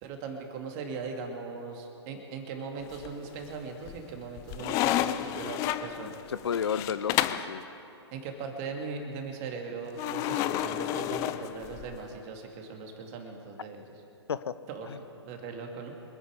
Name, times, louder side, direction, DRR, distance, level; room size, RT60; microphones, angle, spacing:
voice 1, 0.0-6.2 8.1-13.8 14.7-15.9, right 4 dB, 30° right, 3 dB, 2.4 m, -39 dB
sound 1, 2.9-3.4 3.9-7.5 10.0-12.0, left 12 dB, 20° left, 0.5 m, -31 dB
voice 2, 6.0-7.7 14.3-14.5 14.9-15.0, left 7 dB, 60° left, 14 dB, 0.6 m, -32 dB
25.5 x 9.4 x 5.2 m, 2.8 s
figure-of-eight pair, 125°, 15 cm